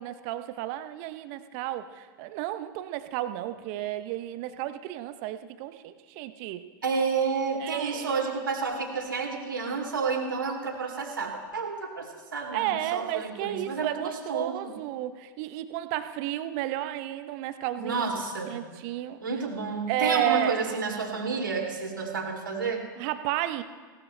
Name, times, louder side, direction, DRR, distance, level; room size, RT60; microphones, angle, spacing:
voice 1, 0.0-6.6 7.6-8.2 12.5-18.1 18.5-19.2 19.9-20.7 23.0-23.6, right 12 dB, 45° right, 10 dB, 0.8 m, -32 dB
voice 2, 6.8-14.7 17.8-18.6 19.2-22.8, right 5 dB, 75° right, 1 dB, 2.4 m, -30 dB
19.0 x 17.5 x 2.2 m, 1.5 s
figure-of-eight pair, 90°, 11 cm